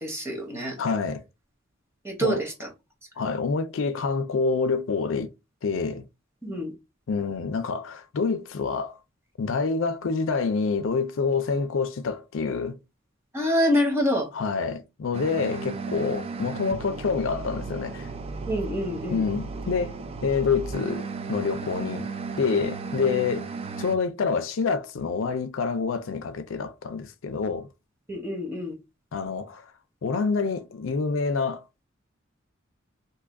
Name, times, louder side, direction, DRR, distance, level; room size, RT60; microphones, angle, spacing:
voice 1, 0.0-0.8 2.0-2.7 6.4-6.7 13.3-14.3 18.5-19.2 28.1-28.7, equal, 15° right, 1.1 m, -26 dB
voice 2, 0.8-1.2 2.2-2.4 3.2-5.3 5.6-6.1 7.1-9.0 9.4-12.8 14.3-18.1 19.1-22.1 22.4-23.4 23.8-27.7 29.1-29.7 30.0-31.6, left 5 dB, 80° left, 0.4 m, -27 dB
sound 1, 15.1-24.0, right 4 dB, 30° right, 0.3 m, -35 dB
2.8 x 2.4 x 3.5 m
head